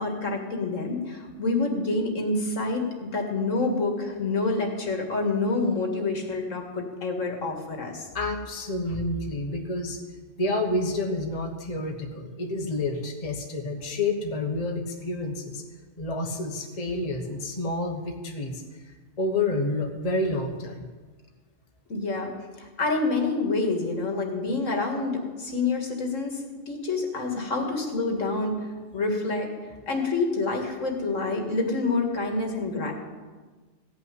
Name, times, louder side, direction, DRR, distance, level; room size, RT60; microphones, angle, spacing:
voice 1, 0.0-8.1 21.9-22.3 22.6-28.5 28.9-29.5 29.9-32.9, left 3 dB, 75° left, 2 dB, 2.2 m, -27 dB
voice 2, 8.1-10.0 10.4-15.6 16.0-20.9, left 2 dB, 30° left, 2 dB, 1.3 m, -29 dB
16.0 x 5.7 x 9.6 m, 1.4 s
omnidirectional pair, 1.3 m